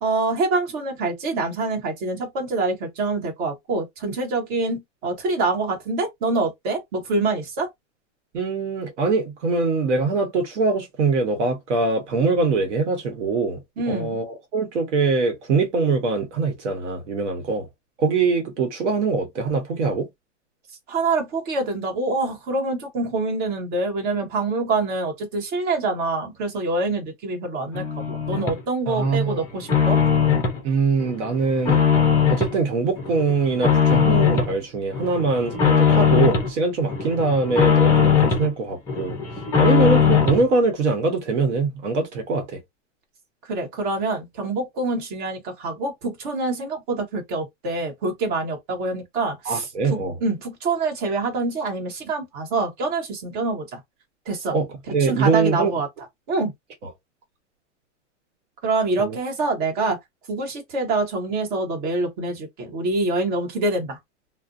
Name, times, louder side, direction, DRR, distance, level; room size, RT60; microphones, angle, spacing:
voice 1, 0.0-7.7 13.8-14.2 20.9-30.0 43.5-53.8 54.3-54.6 55.0-55.9 56.3-56.5 58.6-60.0 60.3-64.0, right 3 dB, 45° right, 1.1 m, -25 dB
voice 2, 8.3-13.6 13.9-17.7 18.0-20.1 28.9-29.4 30.6-31.8 32.3-39.2 39.6-42.6 49.4-50.1 54.5-55.7 56.8-56.9 59.0-59.2, right 4 dB, 70° right, 1.0 m, -23 dB
sound 1, 27.7-28.6 29.0-30.6 31.0-32.6 33.0-34.5 34.9-36.5 36.9-38.5 38.9-40.5, left 7 dB, 10° left, 0.4 m, -20 dB
2.4 x 2.1 x 2.5 m
supercardioid pair, 150°, 37 cm